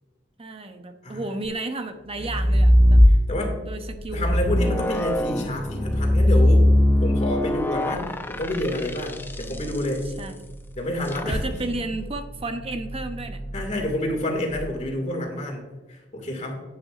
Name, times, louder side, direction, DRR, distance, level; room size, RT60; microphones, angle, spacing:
voice 1, 0.4-3.0 3.6-4.5 7.9-8.1 10.2-10.4 11.2-13.4, right 2 dB, 30° right, 7 dB, 0.9 m, -33 dB
voice 2, 2.2-2.6 3.1-3.5 4.1-6.7 7.0-10.1 10.8-11.7 13.5-16.6, left 1 dB, 40° left, 2 dB, 2.3 m, -29 dB
sound 1, 2.2-3.6 4.1-9.6 11.1-11.4, equal, 10° left, 0.5 m, -19 dB
sound 2, 3.9-14.7, right 1 dB, 65° right, 2.4 m, -39 dB
10.0 x 10.0 x 2.5 m, 1.2 s
head